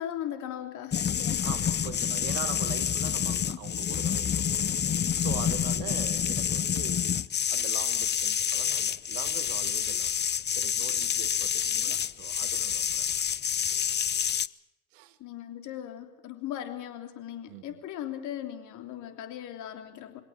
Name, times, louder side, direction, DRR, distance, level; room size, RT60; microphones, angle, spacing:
voice 1, 0.0-1.5 11.7-12.0 15.2-20.2, left 11 dB, 60° left, 3.2 m, -38 dB
sound 1, 0.9-14.5, left 8 dB, 30° left, 0.8 m, -28 dB
voice 2, 1.4-4.8 5.2-7.1 7.5-10.2 10.6-13.1 14.9-15.2 17.5-17.8, right 13 dB, 75° right, 1.9 m, -42 dB
24.0 x 17.5 x 7.4 m
hypercardioid pair, 60°, 32 cm